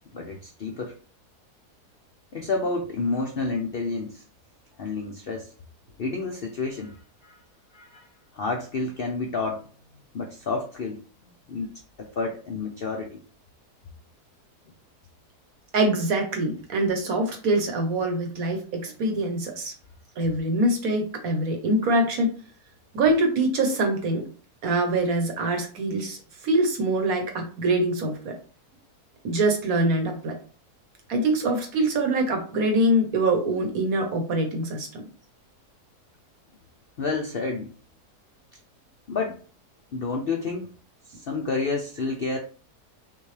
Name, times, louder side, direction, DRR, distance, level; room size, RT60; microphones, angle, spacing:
voice 1, 0.1-0.9 2.3-4.2 4.8-5.5 6.0-7.4 7.7-8.1 8.3-9.7 10.1-11.0 11.5-13.2 37.0-37.7 39.1-39.4 39.9-40.7 41.1-42.4, left 3 dB, 65° left, 2 dB, 0.5 m, -30 dB
voice 2, 15.7-19.7 20.2-22.3 22.9-24.2 24.6-26.2 26.4-28.3 29.2-30.3 31.1-35.0, right 1 dB, 65° right, 3 dB, 1.4 m, -24 dB
5.7 x 2.3 x 3.2 m, 0.39 s
omnidirectional pair, 1.7 m